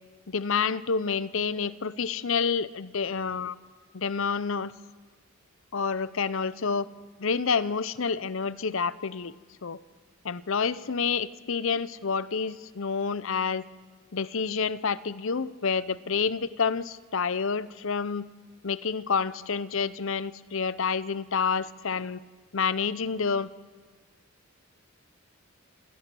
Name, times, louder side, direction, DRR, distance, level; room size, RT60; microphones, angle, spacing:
voice 1, 0.3-3.6 3.9-4.7 5.7-6.9 7.2-9.3 9.6-9.8 10.2-13.6 14.1-18.3 18.6-22.2 22.5-23.5, left 5 dB, 65° left, 16 dB, 0.7 m, -28 dB
28.0 x 17.0 x 6.2 m, 1.4 s
head